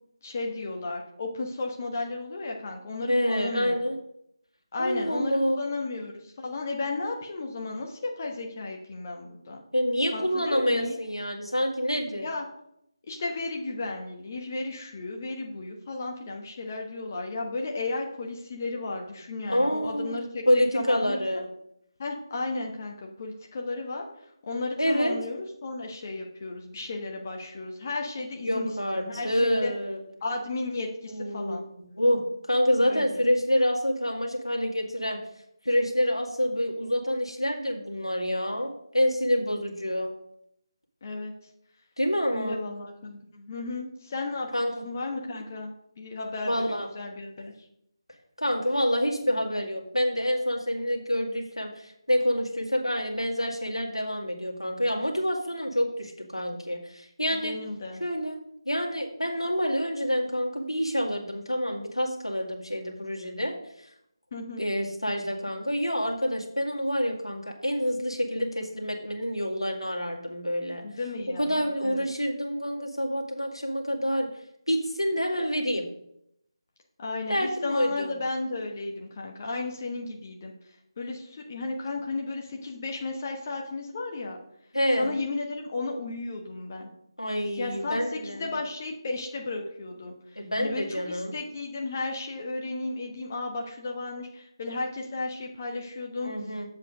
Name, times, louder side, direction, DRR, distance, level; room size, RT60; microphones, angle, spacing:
voice 1, 0.2-3.8 4.7-9.6 10.1-10.9 12.2-12.5 13.1-20.4 20.7-21.2 22.0-24.1 24.4-29.7 30.2-31.6 32.9-33.2 41.0-41.3 42.3-47.5 57.3-58.0 64.3-64.7 70.8-72.1 77.0-80.5 81.0-84.4 85.0-86.9 87.5-96.3, left 3 dB, 30° left, 1 dB, 1.2 m, -34 dB
voice 2, 3.1-4.0 4.8-5.6 9.7-12.3 19.5-21.5 24.8-25.2 28.4-30.0 31.0-31.6 31.9-35.2 35.6-40.1 42.0-42.7 44.5-44.8 46.5-46.9 48.4-57.6 58.0-58.4 58.7-63.6 64.6-70.9 71.4-74.3 74.7-75.8 77.3-78.1 84.7-85.2 87.2-88.5 90.4-91.3 96.2-96.7, equal, 85° left, 0 dB, 2.1 m, -27 dB
7.7 x 7.3 x 5.1 m, 0.75 s
figure-of-eight pair, 160°, 3 cm